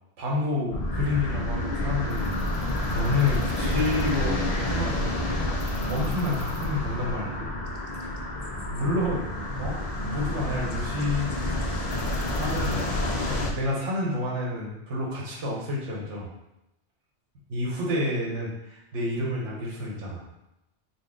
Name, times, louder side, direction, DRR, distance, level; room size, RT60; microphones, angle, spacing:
voice 1, 0.2-5.2 5.9-7.5 8.0-8.2 8.7-9.3 9.6-9.8 10.0-11.3 12.3-16.3 17.5-20.2, left 2 dB, 90° right, -3 dB, 1.3 m, -29 dB
sound 1, 0.7-13.5, left 1 dB, 50° left, 0.4 m, -29 dB
4.1 x 2.1 x 3.7 m, 0.89 s
omnidirectional pair, 1.2 m